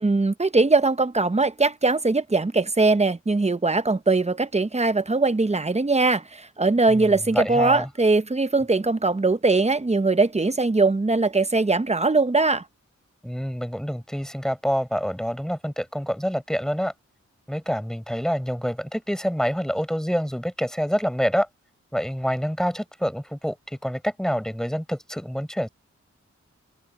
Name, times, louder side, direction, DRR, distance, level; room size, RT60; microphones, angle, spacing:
voice 1, 0.0-6.2 6.6-12.6, right 3 dB, 20° right, 0.8 m, -21 dB
voice 2, 6.9-7.9 13.2-16.9 17.5-21.5 21.9-25.7, equal, ahead, 7.1 m, -27 dB
wide cardioid pair, 80°, 29 cm